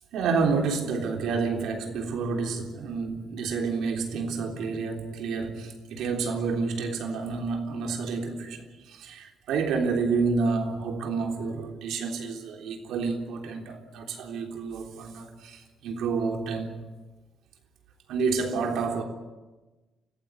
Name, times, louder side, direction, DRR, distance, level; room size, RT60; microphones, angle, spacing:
voice 1, 0.1-16.8 18.1-19.0, right 4 dB, 80° right, 3.5 m, -29 dB
24.5 x 15.0 x 9.7 m
cardioid pair, 90°, 0 cm